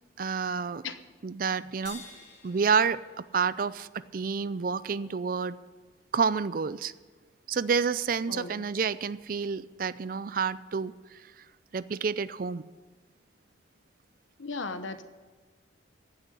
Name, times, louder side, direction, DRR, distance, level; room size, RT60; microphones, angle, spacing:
voice 1, 0.2-0.8 1.2-2.0 2.4-5.6 6.1-6.9 7.5-11.4 11.7-12.6, right 5 dB, 45° right, 16 dB, 0.4 m, -29 dB
sound 1, 1.9-4.4, left 4 dB, 65° left, 3.3 m, -50 dB
voice 2, 8.3-8.6 14.4-15.0, left 4 dB, 85° left, 10 dB, 1.0 m, -36 dB
15.0 x 6.5 x 9.9 m, 1.3 s
head